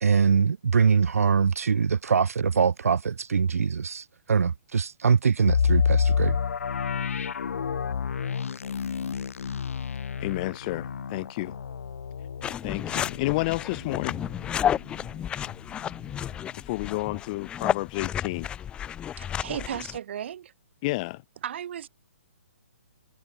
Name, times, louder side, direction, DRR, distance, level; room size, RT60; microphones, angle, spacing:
voice 1, 0.0-6.3, right 6 dB, 80° right, 1.3 m, -23 dB
sound 1, 5.5-15.2 15.5-15.6 16.1-16.4, left 7 dB, 70° left, 4.3 m, -29 dB
voice 2, 10.2-11.6 12.6-14.2 16.5-18.5 20.8-21.2, left 22 dB, 30° left, 2.1 m, -30 dB
sound 2, 12.4-20.0, left 9 dB, 10° left, 1.1 m, -32 dB
voice 3, 19.2-20.5 21.4-21.9, right 10 dB, 50° right, 5.8 m, -35 dB
hypercardioid pair, 155°, 8 cm